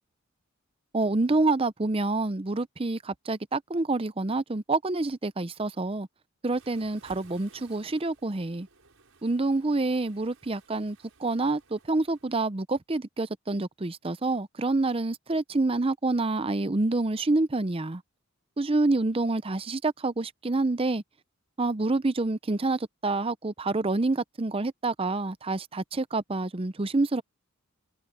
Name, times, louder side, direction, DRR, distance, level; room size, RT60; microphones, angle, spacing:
voice 1, 0.9-6.1 6.4-8.7 9.2-18.0 18.6-21.0 21.6-27.2, right 2 dB, 25° right, 0.6 m, -27 dB
Waves surf, 6.5-12.4, right 4 dB, 65° right, 6.5 m, -58 dB
head